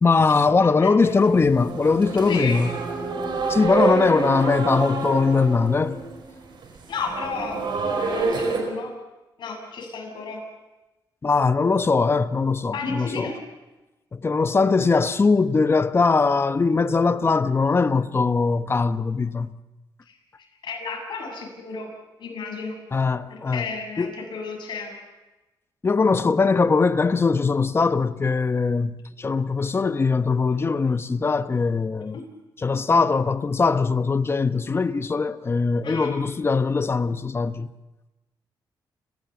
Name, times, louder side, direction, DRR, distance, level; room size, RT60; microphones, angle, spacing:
voice 1, 0.0-2.7 3.5-6.0 11.2-13.3 14.1-19.5 22.9-23.7 24.0-24.1 25.8-32.2 32.6-37.7, left 4 dB, 30° left, 1.0 m, -21 dB
voice 2, 0.6-1.2 2.3-2.6 6.9-8.9 9.4-10.4 12.7-13.4 20.6-21.9 22.2-22.8 23.3-25.0 35.8-36.1, left 4 dB, 65° left, 8.0 m, -32 dB
sound 1, 1.1-8.6, right 4 dB, 70° right, 4.8 m, -28 dB
30.0 x 16.0 x 7.1 m
cardioid pair, 105°, 8 cm